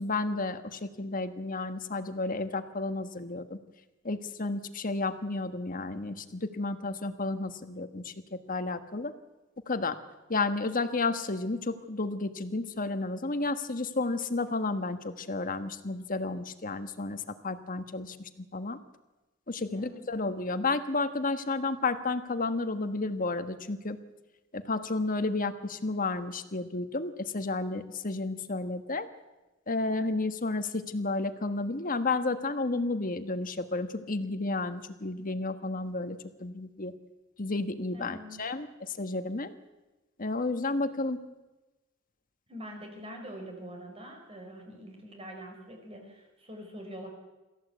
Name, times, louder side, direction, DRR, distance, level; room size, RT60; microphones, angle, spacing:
voice 1, 0.0-3.6 4.0-9.1 9.7-10.0 10.3-18.8 19.5-24.0 24.5-29.1 29.7-36.9 37.4-39.5 40.2-41.2, left 3 dB, 45° left, 9 dB, 1.5 m, -32 dB
voice 2, 19.7-20.0 37.9-38.4 42.5-47.1, equal, 30° right, 2 dB, 5.1 m, -44 dB
26.5 x 14.5 x 8.2 m, 1.1 s
head